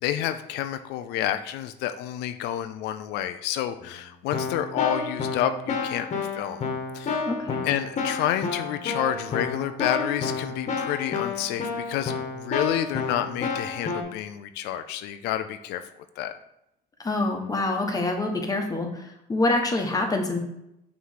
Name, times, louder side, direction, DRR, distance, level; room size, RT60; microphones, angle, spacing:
voice 1, 0.0-6.7 6.9-7.3 7.6-15.8 16.2-16.3, left 11 dB, 90° left, 9 dB, 0.4 m, -29 dB
Keyboard (musical), 3.8-4.0 4.3-14.0, left 4 dB, 45° left, 1.2 m, -30 dB
voice 2, 7.3-7.6 17.0-20.4, left 2 dB, 20° left, 2 dB, 1.1 m, -26 dB
5.8 x 3.2 x 5.6 m, 0.83 s
cardioid pair, 110°, 17 cm